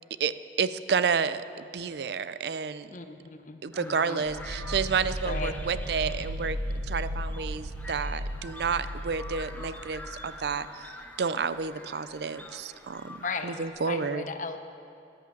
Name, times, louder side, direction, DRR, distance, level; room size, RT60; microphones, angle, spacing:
voice 1, 0.6-2.9 3.6-6.6 6.9-10.8 11.2-14.2, right 5 dB, 65° right, 14 dB, 0.4 m, -30 dB
voice 2, 2.9-4.3 5.2-5.6 13.2-14.6, left 4 dB, 45° left, 8 dB, 0.8 m, -37 dB
sound 1, 3.7-13.7, left 1 dB, 10° left, 0.8 m, -46 dB
sound 2, 4.3-11.0, equal, 80° right, 0.9 m, -36 dB
11.5 x 11.0 x 7.3 m, 2.7 s
head